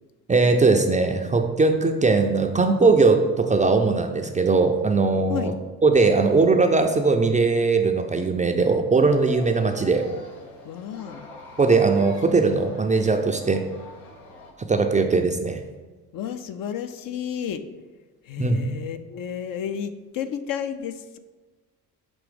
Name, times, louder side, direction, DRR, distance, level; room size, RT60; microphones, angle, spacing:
voice 1, 0.3-5.5 5.8-10.1 11.6-13.6 14.6-15.6 18.4-18.6, right 3 dB, 15° right, 5 dB, 0.4 m, -20 dB
sound 1, 9.1-14.5, left 2 dB, 85° left, 0.9 m, -44 dB
voice 2, 10.6-11.3 16.1-17.6 18.2-21.2, left 8 dB, 50° left, 9 dB, 0.5 m, -32 dB
6.1 x 3.0 x 5.0 m, 1.3 s
hypercardioid pair, 50°, 45 cm